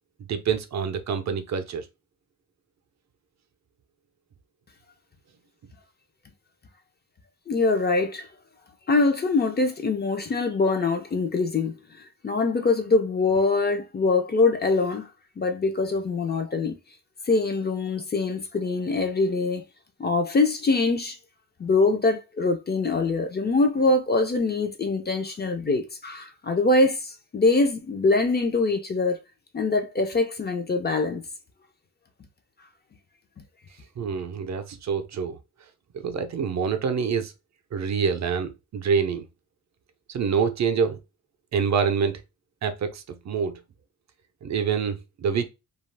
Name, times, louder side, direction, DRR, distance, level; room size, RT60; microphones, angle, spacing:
voice 1, 0.3-1.8 34.0-35.4 35.9-37.3 37.7-39.3 40.1-41.0 41.5-42.2 42.6-43.6 44.4-45.5, right 6 dB, 55° right, 0.5 m, -26 dB
voice 2, 7.5-8.3 8.9-15.1 15.4-16.8 17.3-19.6 20.0-21.2 21.6-29.2 29.5-31.2, left 3 dB, 30° left, 0.4 m, -23 dB
2.3 x 2.3 x 3.2 m
wide cardioid pair, 165°, 33 cm